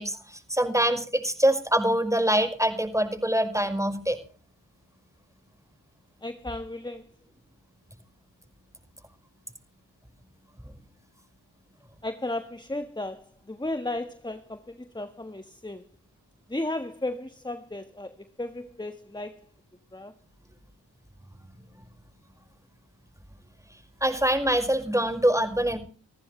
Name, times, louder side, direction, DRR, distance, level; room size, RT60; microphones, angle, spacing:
voice 1, 0.0-4.2 24.0-25.8, right 1 dB, 5° right, 5.4 m, -24 dB
voice 2, 6.2-7.1 12.0-15.9 16.5-19.4 19.9-20.1, left 2 dB, 10° left, 1.4 m, -34 dB
25.5 x 14.5 x 3.2 m
cardioid pair, 45°, 44 cm